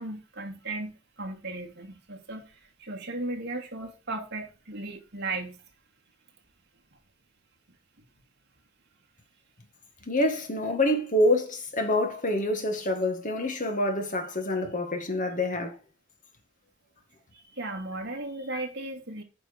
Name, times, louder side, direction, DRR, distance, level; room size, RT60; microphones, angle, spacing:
voice 1, 0.0-5.6 17.3-19.2, right 2 dB, 55° right, 2.7 m, -36 dB
voice 2, 10.1-15.8, left 1 dB, 40° left, 2.0 m, -26 dB
9.6 x 6.0 x 5.3 m
head